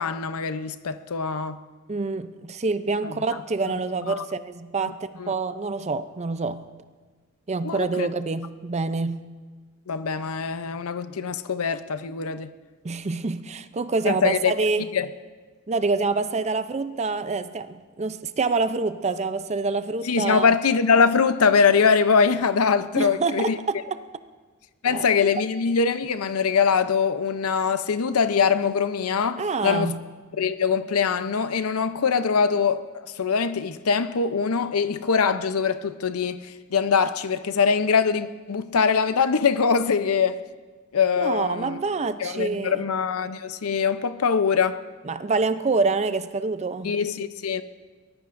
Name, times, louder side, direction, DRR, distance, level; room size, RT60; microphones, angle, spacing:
voice 1, 0.0-1.6 3.0-3.2 4.1-4.2 5.2-5.3 7.6-8.1 9.9-12.5 14.0-14.5 14.9-15.1 20.0-23.6 24.8-29.9 30.4-32.9 33.2-40.4 40.9-41.8 42.2-44.8 46.8-47.6, left 6 dB, 90° left, 0.7 m, -23 dB
voice 2, 1.9-6.6 7.5-9.2 12.8-14.9 15.7-20.5 23.0-24.0 24.8-25.1 29.4-30.0 41.2-42.8 45.0-46.9, right 4 dB, 30° right, 0.5 m, -26 dB
23.5 x 19.5 x 2.6 m
head